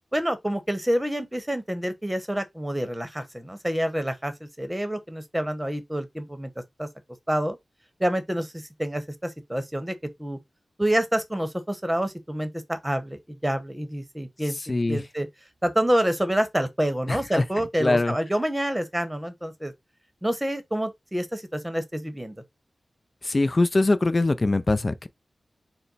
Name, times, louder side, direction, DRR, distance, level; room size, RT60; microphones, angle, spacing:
voice 1, 0.1-6.5 6.8-6.9 7.3-7.6 8.0-10.4 10.8-15.3 15.6-19.7 20.2-22.3, right 1 dB, 10° right, 1.0 m, -27 dB
voice 2, 14.7-15.0 17.1-17.4 17.8-18.2 23.2-25.1, left 2 dB, 40° left, 0.4 m, -22 dB
4.1 x 2.2 x 4.0 m
cardioid pair, 50°, 0 cm